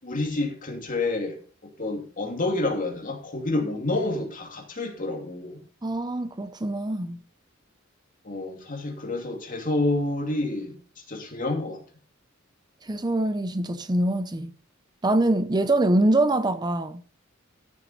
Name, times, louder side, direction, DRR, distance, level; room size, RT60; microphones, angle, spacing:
voice 1, 0.0-5.6 8.2-10.8 11.1-11.8, left 2 dB, 40° left, 2.5 m, -29 dB
voice 2, 5.8-7.2 12.8-14.5 15.0-17.0, right 1 dB, 20° right, 0.6 m, -24 dB
13.5 x 7.3 x 4.2 m
head